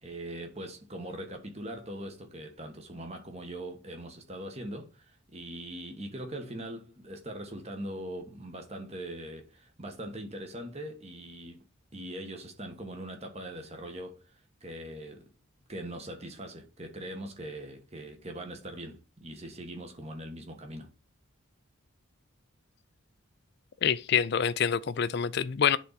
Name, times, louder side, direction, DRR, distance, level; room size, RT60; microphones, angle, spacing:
voice 1, 0.0-11.6 11.9-14.2 14.6-15.3 15.7-20.9, right 1 dB, 30° right, 1.5 m, -41 dB
voice 2, 23.8-25.8, left 8 dB, 50° left, 0.4 m, -26 dB
10.0 x 4.0 x 4.2 m
head